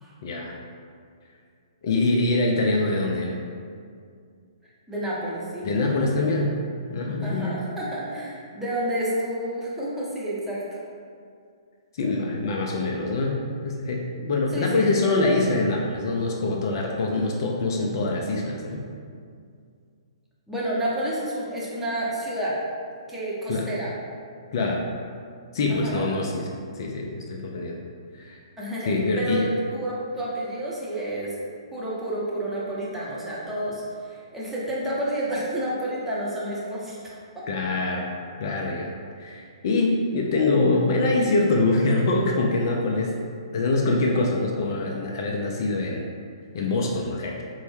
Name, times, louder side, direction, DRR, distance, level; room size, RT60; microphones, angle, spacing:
voice 1, 0.2-0.5 1.8-3.4 5.6-6.6 6.9-7.6 12.0-18.8 23.5-23.7 24.5-24.8 25.5-26.5 26.8-27.8 28.1-28.4 28.9-29.4 37.5-38.1 38.4-38.9 39.2-43.1 43.5-46.1 46.5-47.4, left 2 dB, 50° left, 0 dB, 0.4 m, -24 dB
voice 2, 4.9-5.7 7.2-10.8 14.5-15.6 20.5-22.6 23.1-23.9 25.7-26.1 28.6-31.3 31.7-37.4, right 1 dB, 5° right, -8 dB, 0.7 m, -30 dB
4.4 x 2.1 x 3.1 m, 2.3 s
figure-of-eight pair, 125°, 3 cm